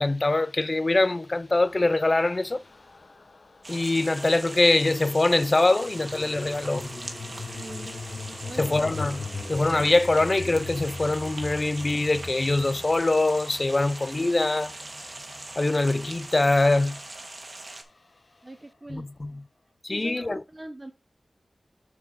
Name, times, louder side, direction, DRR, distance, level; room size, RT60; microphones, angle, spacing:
voice 1, 0.0-2.6 3.7-6.9 8.6-14.7 15.6-17.0 18.9-19.4 19.8-20.4, left 2 dB, 40° left, 0.4 m, -23 dB
sound 1, 1.4-3.9 5.5-17.8, left 3 dB, 60° left, 1.0 m, -41 dB
sound 2, 3.6-17.8, right 2 dB, 50° right, 1.4 m, -41 dB
voice 2, 7.6-7.9 8.4-8.7 18.4-19.1 19.9-20.9, right 1 dB, 30° right, 0.8 m, -41 dB
7.1 x 4.6 x 4.8 m
wide cardioid pair, 70°, 0 cm